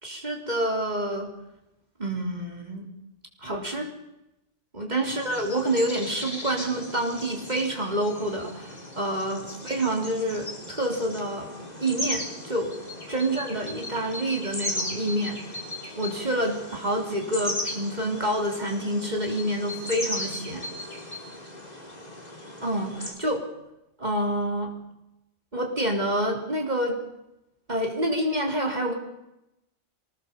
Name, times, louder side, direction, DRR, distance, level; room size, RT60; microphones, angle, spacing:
voice 1, 0.0-1.3 2.0-2.9 3.4-3.9 4.7-11.5 11.8-12.7 13.1-15.5 16.0-20.7 22.6-23.5 24.0-24.7 25.5-27.0 27.7-28.9, right 1 dB, 35° right, 1 dB, 4.2 m, -28 dB
sound 1, 5.0-23.1, left 1 dB, 35° left, 3.8 m, -37 dB
24.0 x 20.0 x 7.2 m, 0.88 s
omnidirectional pair, 1.3 m